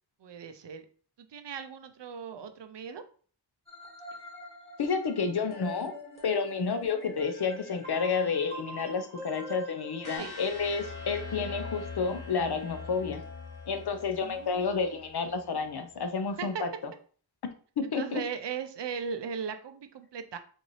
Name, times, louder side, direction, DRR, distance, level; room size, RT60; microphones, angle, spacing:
voice 1, 0.2-0.8 1.2-3.0 10.2-10.3 14.2-14.9 16.4-16.5 17.8-20.4, right 6 dB, 80° right, 9 dB, 0.6 m, -38 dB
sound 1, 3.7-10.2, right 1 dB, 15° left, 1.8 m, -45 dB
voice 2, 4.8-6.0 6.2-13.2 13.7-16.7 17.8-18.2, left 5 dB, 65° left, 8 dB, 0.6 m, -30 dB
sound 2, 10.0-16.1, left 4 dB, 45° left, 1.0 m, -42 dB
4.0 x 2.6 x 3.1 m, 0.43 s
wide cardioid pair, 60°, 42 cm